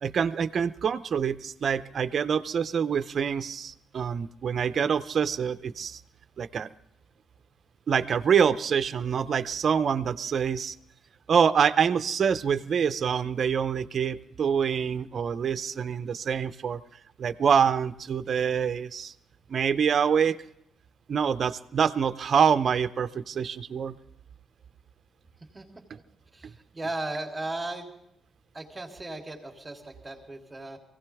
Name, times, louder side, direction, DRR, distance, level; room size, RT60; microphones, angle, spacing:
voice 1, 0.0-6.0 6.4-6.7 7.9-10.7 11.3-16.8 17.2-19.1 19.5-20.4 21.1-24.0 26.4-26.5, right 7 dB, 50° right, 11 dB, 0.6 m, -26 dB
voice 2, 26.3-27.9 28.5-30.8, right 2 dB, 15° right, 2 dB, 3.2 m, -36 dB
23.5 x 16.5 x 3.5 m, 0.76 s
cardioid pair, 90°, 0 cm